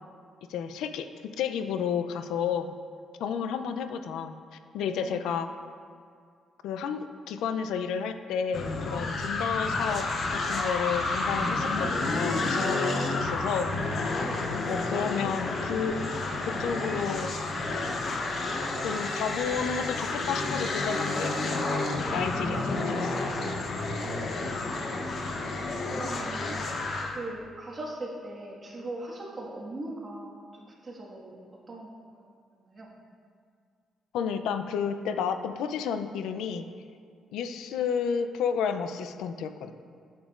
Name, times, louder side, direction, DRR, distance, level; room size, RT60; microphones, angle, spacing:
voice 1, 0.5-2.7 3.2-4.3 4.7-5.5 6.6-10.1 10.3-14.1 14.7-16.0 16.5-17.3 18.8-21.7 22.1-23.3 34.1-36.7 37.3-39.7, left 7 dB, 85° left, 8 dB, 0.4 m, -31 dB
voice 2, 3.3-3.7 5.0-5.2 12.8-13.3 14.2-14.5 24.0-24.9 25.8-31.4 31.7-32.9, right 2 dB, 30° right, -3 dB, 1.6 m, -41 dB
sound 1, 8.5-27.2, left 2 dB, 50° left, 0.8 m, -30 dB
8.7 x 7.2 x 2.4 m, 2.2 s
cardioid pair, 90°, 0 cm